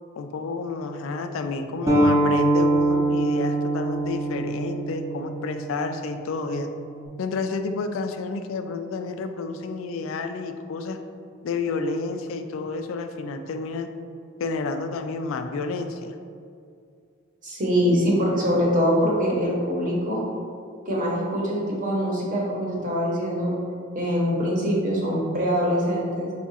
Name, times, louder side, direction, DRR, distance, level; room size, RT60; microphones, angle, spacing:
voice 1, 0.2-6.7 7.2-11.0 11.4-13.9 14.4-16.2, left 3 dB, 75° left, 7 dB, 0.3 m, -30 dB
sound 1, 1.9-7.1, right 2 dB, 15° right, 0.6 m, -24 dB
voice 2, 17.4-20.2 20.8-23.6 23.9-26.3, equal, 40° right, -3 dB, 0.9 m, -23 dB
4.8 x 2.4 x 4.0 m, 2.3 s
head